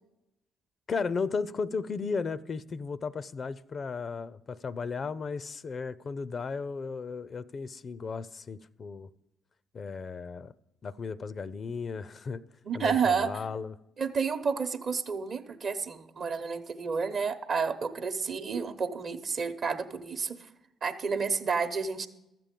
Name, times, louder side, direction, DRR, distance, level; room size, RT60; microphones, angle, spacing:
voice 1, 0.9-9.1 9.7-10.5 10.8-12.4 12.7-13.7, left 5 dB, 50° left, 0.4 m, -35 dB
voice 2, 12.6-13.3 14.0-20.4 20.8-22.1, right 5 dB, 55° right, 0.8 m, -30 dB
13.0 x 7.6 x 5.2 m
hypercardioid pair, 50°, 0 cm